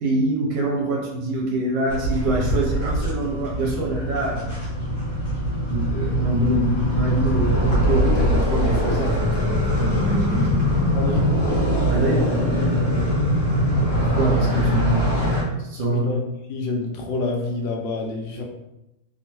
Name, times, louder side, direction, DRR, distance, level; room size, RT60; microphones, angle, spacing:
voice 1, 0.0-4.5 5.7-10.7 11.9-12.3 14.0-15.1 15.6-16.1, right 2 dB, 70° right, -2 dB, 1.4 m, -25 dB
sound 1, 1.9-15.4, equal, 35° left, 1.4 m, -22 dB
voice 2, 10.9-11.4 15.9-16.2 16.5-18.4, left 3 dB, 75° left, 2 dB, 1.2 m, -27 dB
3.3 x 2.1 x 2.9 m, 0.91 s
omnidirectional pair, 2.2 m